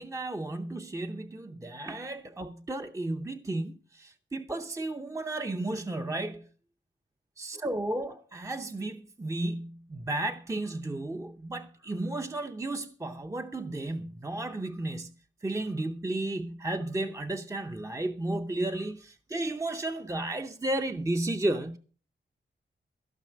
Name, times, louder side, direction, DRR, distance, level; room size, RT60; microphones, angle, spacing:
voice 1, 0.0-6.5 7.4-15.1 15.4-21.8, right 2 dB, 15° right, 0.6 m, -33 dB
15.5 x 5.8 x 7.5 m
wide cardioid pair, 100°, 20 cm